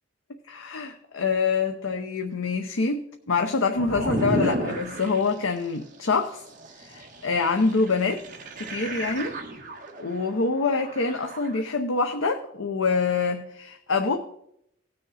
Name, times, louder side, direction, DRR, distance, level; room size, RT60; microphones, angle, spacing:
voice 1, 0.5-3.0 3.3-6.4 6.8-8.2 8.6-9.4 10.0-14.2, left 4 dB, 85° left, 5 dB, 0.8 m, -25 dB
sound 1, 3.8-5.5 6.2-11.6, right 1 dB, 40° right, 1.6 m, -33 dB
18.0 x 6.5 x 4.2 m, 0.74 s
head